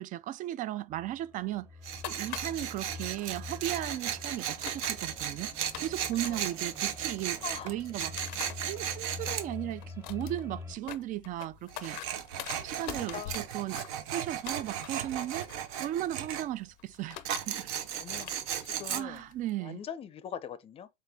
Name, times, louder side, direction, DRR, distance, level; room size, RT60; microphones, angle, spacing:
voice 1, 0.0-1.7 2.0-5.5 5.8-8.2 8.6-12.0 12.6-13.8 14.1-15.5 15.8-17.2 17.5-17.7 18.9-19.8, right 13 dB, 40° right, 0.4 m, -36 dB
sound 1, 0.9-10.8, left 3 dB, 10° right, 0.8 m, -46 dB
Tools, 1.8-9.5 11.7-16.5 17.2-19.0, right 9 dB, 70° right, 0.7 m, -36 dB
sound 2, 1.9-19.5, left 13 dB, 80° left, 0.6 m, -47 dB
voice 2, 7.4-7.7 9.1-9.4 12.9-13.4 17.9-18.3 18.6-19.2 19.6-20.9, left 8 dB, 30° left, 0.5 m, -42 dB
4.2 x 3.6 x 3.5 m
supercardioid pair, 115°, 21 cm